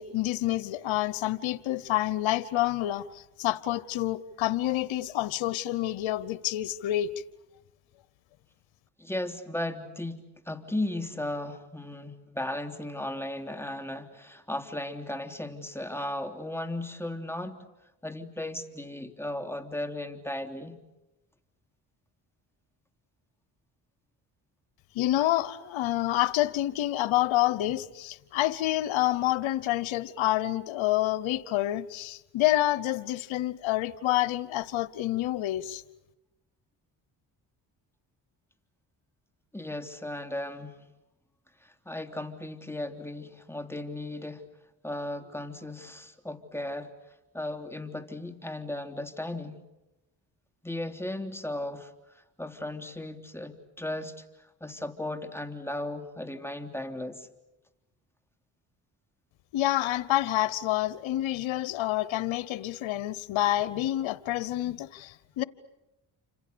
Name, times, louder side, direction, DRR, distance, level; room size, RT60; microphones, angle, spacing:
voice 1, 0.0-7.1 24.9-35.8 59.5-65.4, left 14 dB, 85° left, 1.0 m, -28 dB
voice 2, 9.0-17.6 18.0-20.8 39.5-40.8 41.6-44.5 44.8-46.9 47.3-49.6 50.6-57.3, left 1 dB, 5° left, 3.4 m, -36 dB
29.0 x 26.5 x 6.9 m
supercardioid pair, 55°, 46 cm